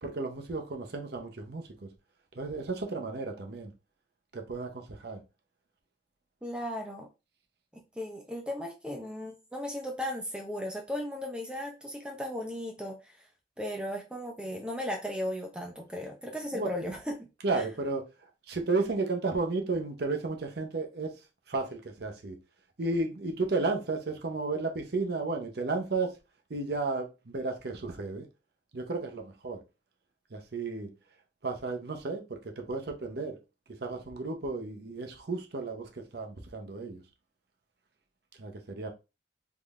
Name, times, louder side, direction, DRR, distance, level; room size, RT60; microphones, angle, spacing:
voice 1, 0.0-1.9 2.4-3.7 4.3-5.2 16.5-16.7 17.4-18.0 18.5-21.1 21.5-22.4 22.8-26.1 26.5-28.3 28.7-29.6 30.3-30.9 31.4-33.4 33.8-37.0 38.4-38.9, right 3 dB, 55° right, 0.7 m, -33 dB
voice 2, 6.4-7.1 7.7-13.2 13.6-17.3 17.5-17.7, left 1 dB, 5° right, 0.4 m, -36 dB
3.6 x 3.2 x 2.4 m
head